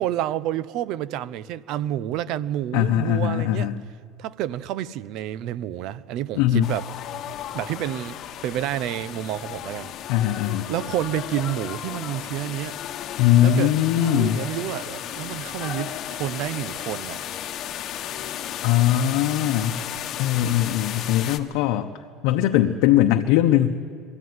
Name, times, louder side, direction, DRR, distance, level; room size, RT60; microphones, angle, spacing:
voice 1, 0.0-3.7 4.2-6.8 7.5-8.2 8.4-9.9 10.7-12.8 13.4-13.7 14.0-17.2, right 12 dB, 55° right, 0.6 m, -29 dB
voice 2, 2.7-3.8 6.4-6.7 10.1-10.7 13.2-14.4 18.6-19.9 20.2-21.9 22.2-23.7, left 12 dB, 70° left, 0.9 m, -20 dB
sound 1, 6.6-21.4, left 10 dB, 40° left, 1.1 m, -34 dB
22.5 x 14.5 x 9.5 m
cardioid pair, 155°, 0 cm